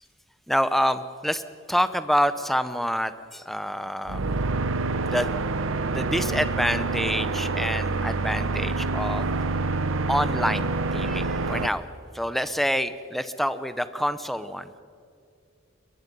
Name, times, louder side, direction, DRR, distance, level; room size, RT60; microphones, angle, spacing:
voice 1, 0.5-1.4 1.7-4.2 5.0-5.3 5.9-9.3 10.1-11.9 12.1-14.7, equal, ahead, 12 dB, 0.7 m, -27 dB
sound 1, 4.1-11.7, right 3 dB, 90° right, 0.8 m, -27 dB
22.0 x 21.5 x 5.4 m, 2.4 s
head